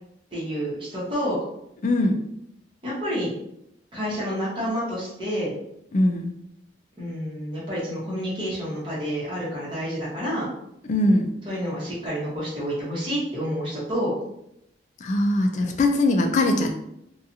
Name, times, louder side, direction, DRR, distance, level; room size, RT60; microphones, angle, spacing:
voice 1, 0.3-1.4 2.8-3.3 3.9-5.5 7.0-10.5 11.4-14.1 15.6-15.7, equal, 25° right, -8 dB, 1.0 m, -29 dB
voice 2, 1.8-2.2 5.9-6.3 10.8-11.3 15.0-16.8, left 1 dB, 40° left, 4 dB, 0.3 m, -21 dB
2.7 x 2.4 x 2.5 m, 0.78 s
head